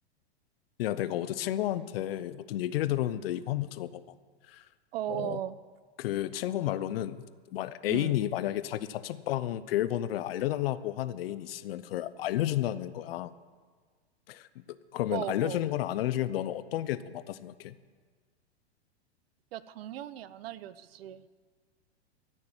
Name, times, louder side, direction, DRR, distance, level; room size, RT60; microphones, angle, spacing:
voice 1, 0.8-4.0 4.5-4.6 5.1-5.4 6.0-7.2 7.5-13.3 14.3-14.5 14.9-17.7, left 13 dB, 60° left, 15 dB, 0.8 m, -31 dB
voice 2, 4.9-5.6 7.9-8.2 15.1-15.6 19.5-21.3, right 12 dB, 60° right, 16 dB, 0.7 m, -37 dB
14.0 x 6.7 x 8.8 m, 1.5 s
hypercardioid pair, 120°, 33 cm